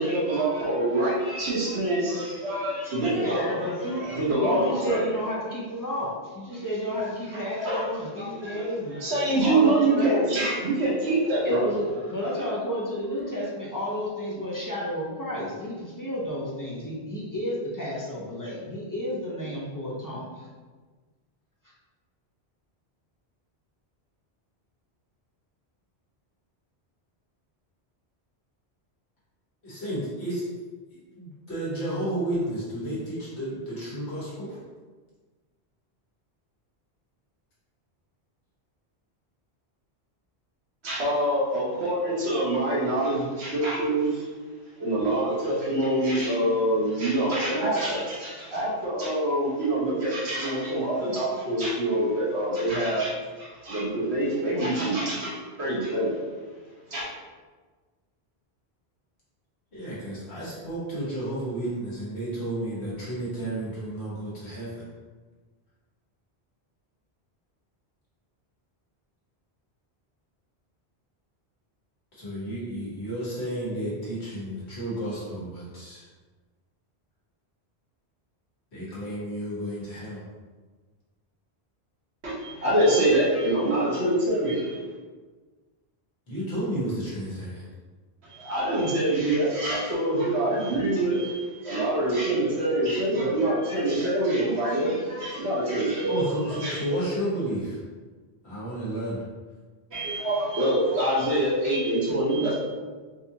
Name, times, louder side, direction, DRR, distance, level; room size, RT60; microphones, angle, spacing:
voice 1, 0.0-5.1 7.3-7.8 8.2-8.6 9.0-11.6 40.8-44.3 44.8-56.2 56.9-57.0 82.2-84.8 88.2-96.2 96.5-96.8 99.9-102.6, right 1 dB, 75° right, -7 dB, 1.4 m, -25 dB
voice 2, 3.2-4.0 4.4-9.0 9.4-10.1 11.4-20.5, equal, 25° left, -6 dB, 0.5 m, -31 dB
voice 3, 29.6-30.4 30.9-34.6 59.7-64.9 72.1-76.1 78.7-80.2 86.3-87.7 96.1-97.8 98.4-99.2, right 1 dB, 75° left, -8 dB, 1.7 m, -32 dB
4.1 x 2.5 x 2.8 m, 1.4 s
omnidirectional pair, 1.1 m